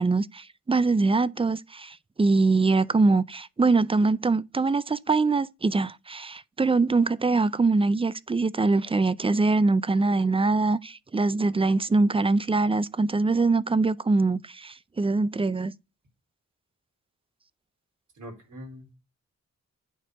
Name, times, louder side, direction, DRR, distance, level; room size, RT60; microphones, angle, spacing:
voice 1, 0.0-15.7, right 3 dB, 20° right, 0.4 m, -23 dB
voice 2, 18.1-19.0, equal, 75° right, 4.1 m, -43 dB
9.1 x 4.3 x 4.8 m
wide cardioid pair, 100°, 31 cm